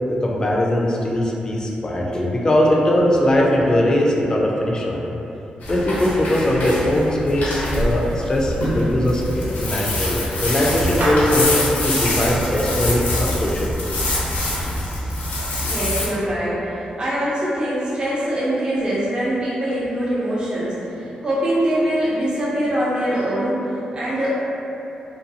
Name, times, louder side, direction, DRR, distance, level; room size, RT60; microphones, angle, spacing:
voice 1, 0.1-5.1 5.7-13.7, left 1 dB, 25° left, -3 dB, 0.4 m, -20 dB
sound 1, 5.6-16.1, left 1 dB, 85° left, 0.6 m, -24 dB
Clapping / Meow, 9.4-15.5, right 1 dB, 85° right, 0.5 m, -32 dB
voice 2, 15.6-24.3, right 1 dB, 35° right, -10 dB, 0.7 m, -23 dB
2.5 x 2.3 x 2.7 m, 2.9 s
cardioid pair, 90°, 3 cm